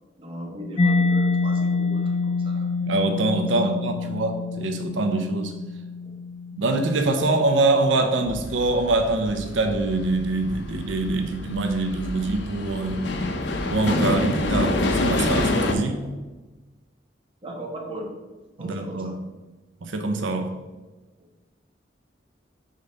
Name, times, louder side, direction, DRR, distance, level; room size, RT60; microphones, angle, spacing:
voice 1, 0.2-2.9 3.5-3.7 4.0-4.2 6.0-6.1 16.0-16.1 17.4-18.2 18.6-19.2 21.2-21.3, equal, 30° right, 1 dB, 1.1 m, -37 dB
Mallet percussion, 0.8-8.3, left 3 dB, 35° left, 0.6 m, -27 dB
voice 2, 2.8-5.5 6.5-13.0 13.7-16.1 18.6-19.2 19.8-20.5, right 2 dB, 90° right, 6 dB, 0.6 m, -24 dB
sound 1, 8.3-15.7, left 2 dB, 70° left, 0.7 m, -27 dB
5.2 x 4.0 x 5.2 m, 1.2 s
head